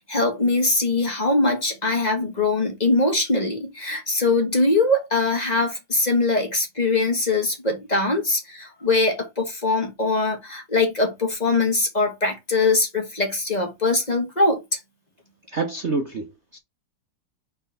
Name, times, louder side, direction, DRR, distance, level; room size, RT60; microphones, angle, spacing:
voice 1, 0.0-14.8, left 3 dB, 20° left, 1.7 m, -22 dB
voice 2, 15.5-16.6, right 4 dB, 55° right, 0.7 m, -27 dB
4.4 x 4.3 x 5.5 m
omnidirectional pair, 2.4 m